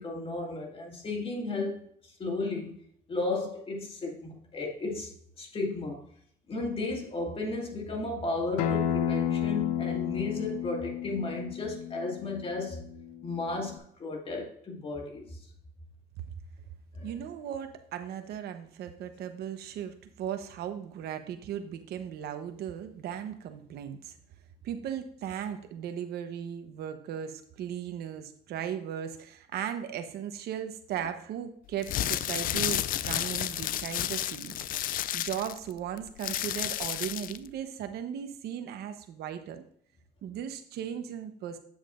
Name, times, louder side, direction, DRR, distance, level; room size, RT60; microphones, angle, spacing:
voice 1, 0.0-2.7 3.1-6.1 6.5-12.8 13.2-15.4 16.9-17.1, left 2 dB, 35° left, 2.2 m, -34 dB
Acoustic guitar, 8.6-13.8, left 10 dB, 90° left, 0.7 m, -32 dB
voice 2, 17.0-24.2 24.6-39.6 40.2-41.6, right 9 dB, 75° right, 1.0 m, -37 dB
sound 1, 31.7-37.5, left 12 dB, 55° left, 0.4 m, -31 dB
8.9 x 7.4 x 2.5 m
cardioid pair, 110°, 17 cm